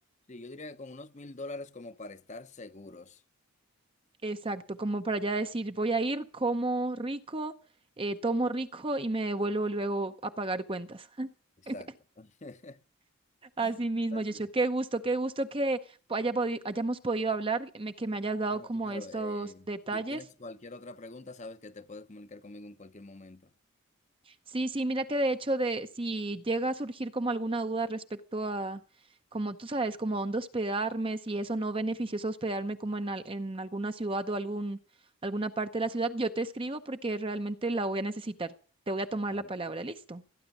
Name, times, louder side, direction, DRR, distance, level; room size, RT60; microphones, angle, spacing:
voice 1, 0.3-3.2 11.6-11.9 12.2-12.8 13.6-13.8 14.1-14.5 18.5-23.5 39.3-39.5, left 2 dB, 30° left, 0.8 m, -45 dB
voice 2, 4.2-7.5 8.0-11.3 11.7-11.8 13.6-15.8 16.1-20.2 24.5-28.8 29.3-34.8 35.2-38.5 38.9-40.2, right 2 dB, 25° right, 0.7 m, -31 dB
17.5 x 10.0 x 7.3 m
head